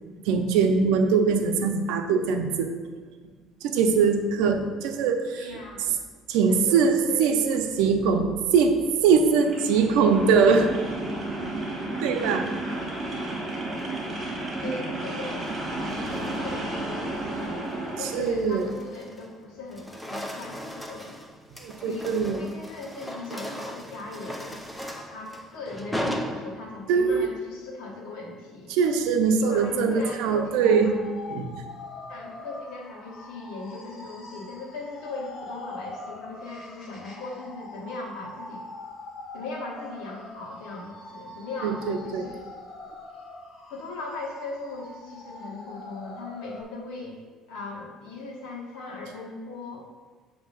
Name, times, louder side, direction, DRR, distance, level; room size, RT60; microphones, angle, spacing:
voice 1, 0.2-2.7 3.6-5.5 6.3-8.7 9.0-10.7 12.0-12.4 18.1-18.7 21.6-22.4 26.9-27.3 28.7-30.9 31.3-31.5 41.6-42.3, right 5 dB, 85° right, 5 dB, 0.6 m, -22 dB
voice 2, 5.4-5.9 6.5-7.3 14.6-15.5 15.8-17.6 18.0-21.2 21.8-24.6 24.8-28.8 29.5-31.0 32.1-38.7 39.3-42.4 43.7-47.2 47.5-49.9, left 3 dB, 75° left, -3 dB, 1.2 m, -39 dB
sound 1, 9.4-18.2, right 2 dB, 25° right, 1.7 m, -32 dB
sound 2, 13.6-14.1 15.2-16.7 17.2-17.5 17.9-19.4 19.6-27.0, equal, ahead, 0.5 m, -38 dB
sound 3, 30.5-46.6, left 2 dB, 40° left, 0.9 m, -43 dB
7.3 x 2.9 x 5.4 m, 1.4 s
cardioid pair, 135°, 0 cm